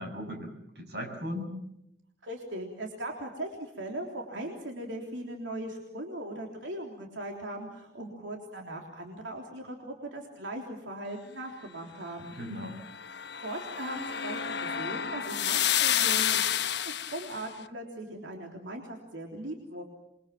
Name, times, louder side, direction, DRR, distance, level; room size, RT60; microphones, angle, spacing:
voice 1, 0.0-1.5 12.2-12.8, left 1 dB, 60° right, 4 dB, 6.6 m, -38 dB
voice 2, 2.2-12.4 13.4-19.8, right 1 dB, 85° right, 1 dB, 3.5 m, -39 dB
sound 1, 12.8-17.4, left 9 dB, 65° left, 1.1 m, -29 dB
27.5 x 23.0 x 7.4 m, 0.80 s
head